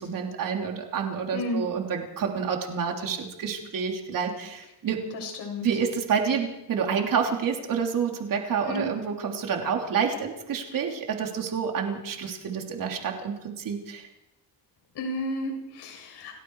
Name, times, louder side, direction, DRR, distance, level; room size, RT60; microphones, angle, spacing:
voice 1, 0.0-5.0 5.6-14.1, right 6 dB, 55° right, 2 dB, 3.5 m, -28 dB
voice 2, 1.3-1.6 5.1-5.7 8.6-8.9 14.9-16.4, left 1 dB, 85° left, 2 dB, 7.7 m, -32 dB
29.5 x 18.0 x 4.9 m, 0.93 s
cardioid pair, 165°, 40 cm